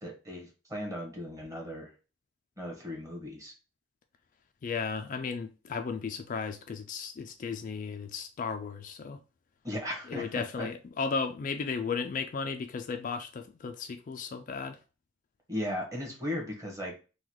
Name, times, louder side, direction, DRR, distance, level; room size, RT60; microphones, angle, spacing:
voice 1, 0.0-1.9 2.6-3.5 9.6-10.7 15.5-16.9, left 1 dB, 15° right, 1.3 m, -37 dB
voice 2, 4.6-9.2 10.1-14.8, left 5 dB, 40° left, 0.3 m, -35 dB
3.9 x 2.3 x 4.5 m
head